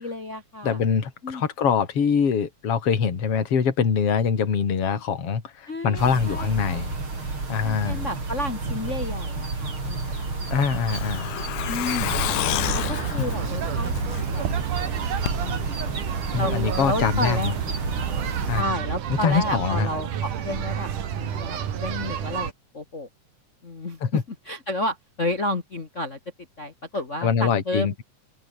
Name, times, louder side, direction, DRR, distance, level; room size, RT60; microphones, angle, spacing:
voice 1, 0.0-0.8 1.2-1.4 5.7-6.8 7.6-10.9 11.2-11.3 11.7-12.2 12.7-14.5 14.8-14.9 15.4-15.9 16.4-16.5 16.8-17.6 18.5-20.9 21.1-23.1 23.6-24.2 24.5-26.2 26.6-28.0, left 1 dB, 30° left, 1.5 m, -31 dB
voice 2, 0.6-7.0 7.5-8.1 10.5-11.3 16.3-17.5 18.5-18.7 19.2-19.9 24.0-24.2 27.2-28.0, left 6 dB, 45° left, 3.8 m, -23 dB
sound 1, 6.0-18.6, right 3 dB, 40° right, 6.0 m, -31 dB
Truck, 9.9-14.5 14.8-14.9 15.3-15.4, left 16 dB, 90° left, 2.5 m, -30 dB
sound 2, 12.0-22.5, right 9 dB, 75° right, 3.7 m, -30 dB
open air
omnidirectional pair, 3.7 m